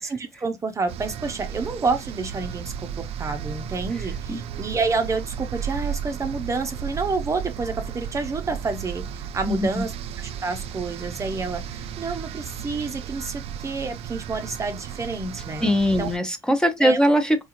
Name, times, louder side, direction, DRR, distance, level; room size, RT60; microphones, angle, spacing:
voice 1, 0.0-15.7 16.0-16.1 16.8-17.0, right 4 dB, 30° right, 0.6 m, -29 dB
sound 1, 0.9-16.2, right 8 dB, 70° right, 0.4 m, -34 dB
voice 2, 9.5-9.8 15.6-17.4, equal, 5° left, 0.7 m, -21 dB
4.5 x 2.4 x 2.9 m
cardioid pair, 105°, 11 cm